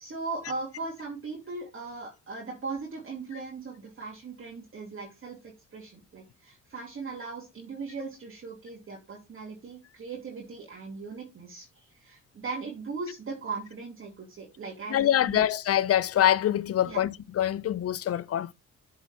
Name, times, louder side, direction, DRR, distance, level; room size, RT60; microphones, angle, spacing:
voice 1, 0.0-15.4 16.9-17.0, right 4 dB, 45° right, 2.7 m, -39 dB
voice 2, 14.9-18.5, left 11 dB, 50° left, 0.6 m, -25 dB
8.0 x 4.7 x 4.2 m
cardioid pair, 90°, 30 cm